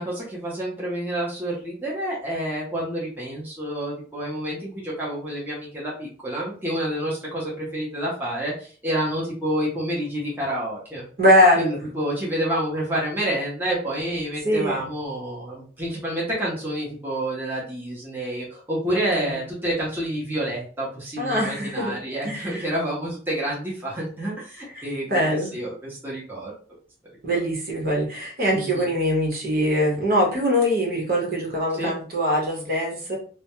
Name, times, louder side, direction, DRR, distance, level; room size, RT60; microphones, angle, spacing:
voice 1, 0.0-11.1 11.6-25.2 25.5-26.5 27.3-27.4 28.5-28.9 31.8-31.9, right 1 dB, 10° right, -6 dB, 0.7 m, -28 dB
voice 2, 11.2-11.8 14.4-14.8 18.9-19.4 21.2-22.0 22.2-22.7 24.7-24.8 25.1-25.5 27.2-33.2, equal, 50° right, -2 dB, 0.9 m, -22 dB
2.2 x 2.1 x 2.9 m, 0.43 s
head